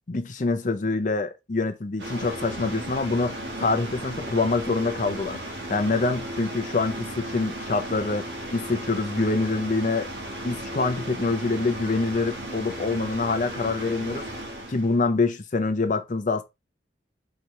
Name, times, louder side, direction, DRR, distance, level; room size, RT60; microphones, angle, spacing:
voice 1, 0.1-5.4 5.7-8.3 8.5-10.1 10.4-14.3 14.7-16.4, left 3 dB, 45° left, 0.6 m, -25 dB
sound 1, 2.0-15.0, right 1 dB, 85° right, 1.3 m, -35 dB
3.8 x 3.0 x 3.1 m
head